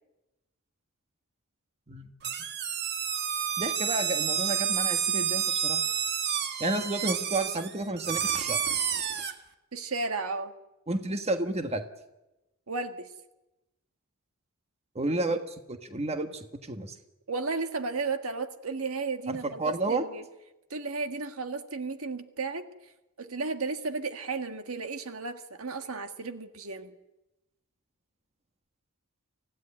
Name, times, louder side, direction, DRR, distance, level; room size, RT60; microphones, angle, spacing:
voice 1, 1.9-2.3 3.6-5.8 6.6-8.6 10.9-11.8 14.9-17.0 19.3-20.0, right 2 dB, 30° right, 7 dB, 1.4 m, -31 dB
sound 1, 2.2-9.3, right 8 dB, 50° right, 1.6 m, -29 dB
voice 2, 9.7-10.5 12.7-13.1 17.3-20.2 20.7-22.6 23.2-26.9, right 4 dB, 70° right, 7 dB, 1.6 m, -34 dB
25.0 x 16.0 x 9.9 m, 0.98 s
head